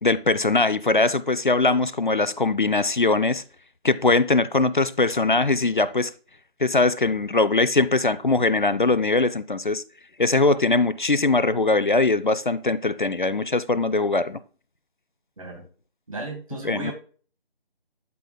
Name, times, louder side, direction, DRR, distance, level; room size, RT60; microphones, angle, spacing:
voice 1, 0.0-3.4 3.8-6.1 6.6-9.8 10.2-14.4 16.6-16.9, left 3 dB, 55° left, 0.4 m, -21 dB
voice 2, 16.1-16.9, right 2 dB, 35° right, 2.0 m, -34 dB
11.5 x 4.4 x 2.2 m
figure-of-eight pair, 165°, 31 cm